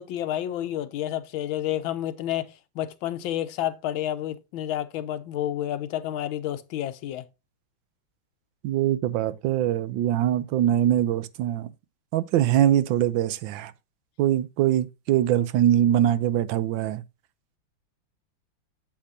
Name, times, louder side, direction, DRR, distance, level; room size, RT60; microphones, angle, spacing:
voice 1, 0.0-7.2, left 12 dB, 90° left, 1.5 m, -30 dB
voice 2, 8.6-11.7 12.1-13.7 14.2-17.0, right 11 dB, 85° right, 1.4 m, -23 dB
8.7 x 7.6 x 2.7 m
omnidirectional pair, 2.1 m